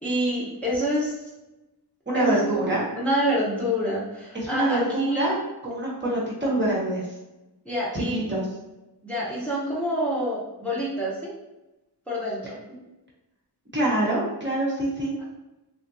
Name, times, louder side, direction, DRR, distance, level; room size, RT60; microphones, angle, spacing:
voice 1, 0.0-1.1 2.1-5.3 7.6-8.2 9.0-11.4 12.1-12.6, equal, 5° left, -7 dB, 0.9 m, -27 dB
voice 2, 2.1-2.8 4.3-7.1 7.9-8.5 13.7-15.1, right 1 dB, 25° right, -5 dB, 1.0 m, -25 dB
3.5 x 2.5 x 2.6 m, 0.98 s
wide cardioid pair, 85°, 42 cm